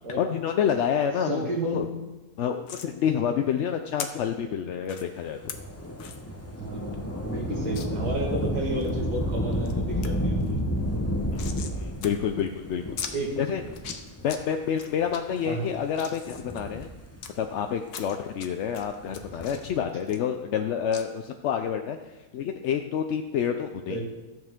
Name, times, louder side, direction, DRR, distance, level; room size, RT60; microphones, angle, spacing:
voice 1, 0.2-1.9 2.4-5.5 11.3-13.6 14.2-16.9 17.4-22.0 22.3-24.0, left 8 dB, 65° left, 5 dB, 0.7 m, -28 dB
voice 2, 1.2-2.0 6.6-6.9 7.2-10.6 13.1-13.6 15.5-15.7 23.9-24.0, right 1 dB, 85° right, 0 dB, 2.4 m, -31 dB
sound 1, 2.7-2.9 4.0-4.1 4.8-5.0 5.5-5.6 6.0-6.2 6.6-6.7 6.9-7.0 7.7-7.9 8.4-8.9 9.4-9.7 10.0-10.1 10.4-11.8 12.0-12.1 12.4-12.5 13.0-13.1 13.7-14.4 14.8-15.2 15.7-17.3 17.9-18.5 18.7-20.6 20.9-21.0, left 7 dB, 90° left, 1.3 m, -39 dB
Thunder / Rain, 5.4-14.4 15.1-15.2 16.2-17.4 19.0-19.7, equal, 15° left, 0.6 m, -31 dB
14.0 x 7.6 x 3.6 m, 1.1 s
omnidirectional pair, 1.6 m